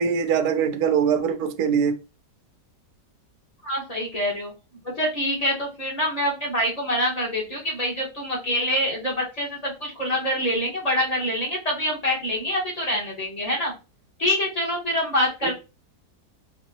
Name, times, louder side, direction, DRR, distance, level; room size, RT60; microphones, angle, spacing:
voice 1, 0.0-2.0, right 7 dB, 70° right, 1.0 m, -22 dB
voice 2, 3.6-4.5 4.8-13.7 14.2-15.5, equal, 25° left, 1.4 m, -25 dB
4.1 x 2.6 x 2.9 m
omnidirectional pair, 1.8 m